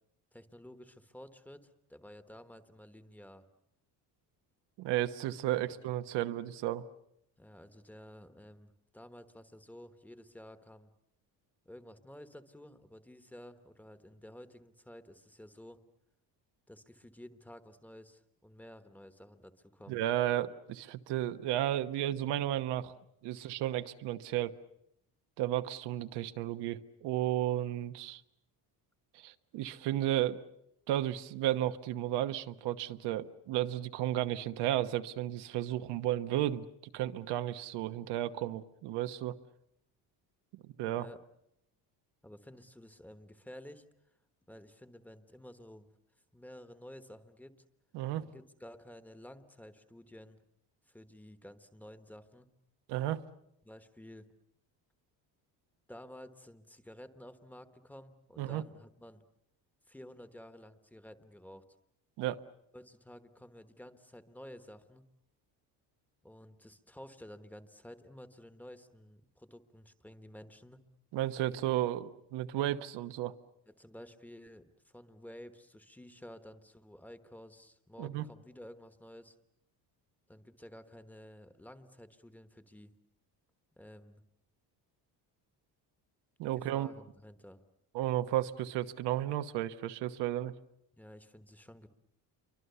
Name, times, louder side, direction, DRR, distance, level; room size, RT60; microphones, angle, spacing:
voice 1, 0.3-3.5 5.7-5.8 7.4-10.9 11.6-15.8 16.7-20.0 23.3-23.5 41.0-41.2 42.2-43.8 44.5-45.9 46.3-47.6 48.2-50.4 50.9-52.5 53.6-54.3 55.9-59.2 59.9-61.6 62.7-65.1 66.2-70.8 73.7-79.4 80.3-82.9 83.7-84.2 86.5-87.6 90.9-91.9, left 1 dB, 5° left, 9 dB, 1.2 m, -52 dB
voice 2, 4.8-6.8 19.9-22.9 23.2-24.5 25.4-28.2 29.1-30.4 30.9-36.7 36.9-39.4 40.5-41.1 47.9-48.2 52.9-53.2 58.4-58.6 62.2-62.4 71.1-73.3 78.0-78.3 86.4-86.9 87.9-90.5, right 13 dB, 85° right, 9 dB, 1.2 m, -33 dB
28.5 x 24.0 x 6.9 m, 0.77 s
cardioid pair, 160°, 40 cm